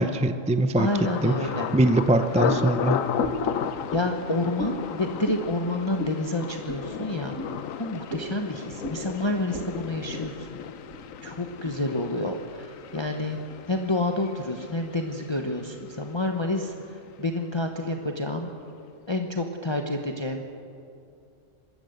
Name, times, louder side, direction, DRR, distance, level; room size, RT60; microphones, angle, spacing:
voice 1, 0.0-0.9 1.2-1.3 1.7-3.0, right 1 dB, 10° right, 10 dB, 0.4 m, -22 dB
Thunder, 0.8-16.5 16.8-17.4 17.8-18.1, left 8 dB, 85° left, 1.2 m, -34 dB
voice 2, 0.8-1.7 3.9-7.3 7.8-10.6 11.2-13.4 13.7-18.5 19.1-20.4, left 2 dB, 20° left, 3 dB, 1.0 m, -29 dB
sound 1, 2.5-2.8 3.2-3.5 3.9-4.1 4.6-4.8 5.2-5.4 6.0-6.2 6.7-6.8 7.3-7.5 8.1-8.3 8.8-9.0 9.5-9.7 10.0-10.4 10.9-11.0 11.6-11.8, equal, 60° right, 2.6 m, -34 dB
24.0 x 13.5 x 7.9 m, 2.5 s
omnidirectional pair, 1.3 m